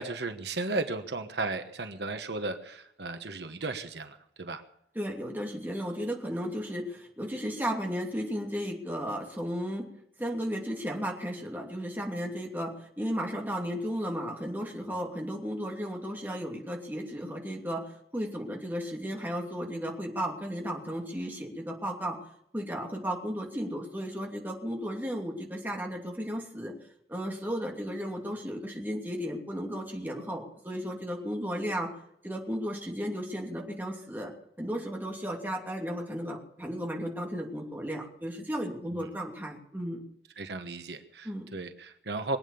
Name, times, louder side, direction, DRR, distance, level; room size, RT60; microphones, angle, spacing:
voice 1, 0.0-4.6 38.9-39.2 40.4-42.4, right 3 dB, 80° right, 8 dB, 1.3 m, -35 dB
voice 2, 4.9-9.9 10.2-22.2 22.5-26.7 27.1-31.9 32.2-34.3 34.6-40.0 41.2-41.5, equal, 10° right, 0 dB, 2.7 m, -34 dB
22.5 x 8.8 x 7.0 m, 0.74 s
head